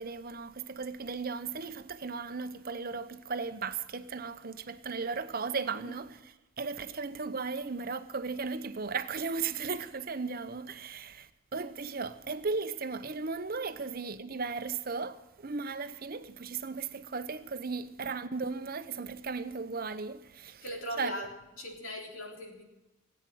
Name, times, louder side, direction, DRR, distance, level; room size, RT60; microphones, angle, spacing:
voice 1, 0.0-20.6 21.0-21.2, right 4 dB, 45° right, 0.8 m, -36 dB
voice 2, 20.6-21.3 21.6-22.6, equal, 75° left, 3.7 m, -40 dB
18.0 x 8.9 x 7.7 m
head